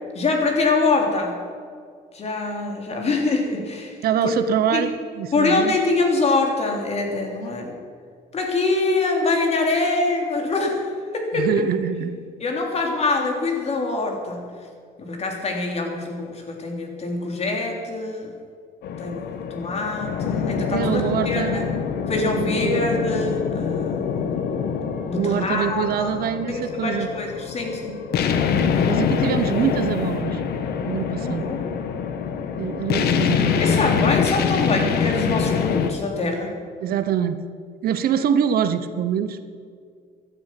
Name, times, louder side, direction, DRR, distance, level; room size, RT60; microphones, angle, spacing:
voice 1, 0.1-1.4 2.1-4.0 4.2-4.3 4.7-4.8 5.3-7.8 8.3-10.8 11.1-11.5 12.4-14.5 15.0-18.3 19.0-21.7 22.1-24.3 25.1-26.1 26.5-28.0 31.2-31.7 33.6-36.5, left 3 dB, 40° left, 2 dB, 3.4 m, -24 dB
voice 2, 4.0-5.8 11.3-12.2 20.7-21.6 22.4-22.8 25.1-27.1 28.9-30.4 30.8-31.5 32.6-33.6 36.8-37.4 37.8-39.5, right 9 dB, 65° right, 11 dB, 1.0 m, -24 dB
sound 1, 18.8-35.9, left 7 dB, 70° left, 1.4 m, -25 dB
16.0 x 11.5 x 6.0 m, 2.1 s
cardioid pair, 110°, 17 cm